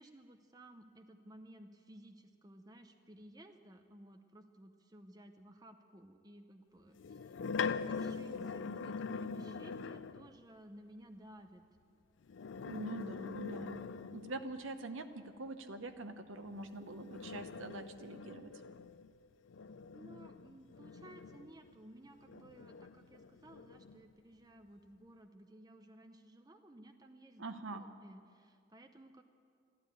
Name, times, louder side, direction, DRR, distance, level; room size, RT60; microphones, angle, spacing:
voice 1, 0.0-7.3 7.7-11.6 19.9-29.2, right 1 dB, 20° right, 6 dB, 0.6 m, -57 dB
sound 1, 7.0-10.3 12.2-14.6 16.5-21.7 22.3-24.0, left 5 dB, 70° left, 0.4 m, -43 dB
voice 2, 12.6-18.5 27.4-27.8, right 2 dB, 75° right, 9 dB, 0.9 m, -44 dB
14.0 x 12.0 x 8.4 m, 2.3 s
head